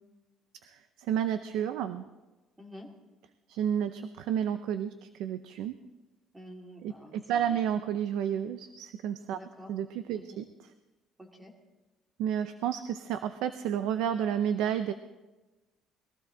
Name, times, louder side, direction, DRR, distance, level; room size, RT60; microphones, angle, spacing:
voice 1, 1.1-2.0 3.5-5.8 6.8-9.4 9.7-10.4 12.2-14.9, right 9 dB, 90° right, 10 dB, 0.6 m, -31 dB
voice 2, 2.6-2.9 6.3-7.6 9.3-9.7 10.1-10.4 11.2-11.5, equal, 10° right, 1 dB, 2.3 m, -48 dB
21.0 x 15.0 x 3.9 m, 1.1 s
cardioid pair, 160°, 0 cm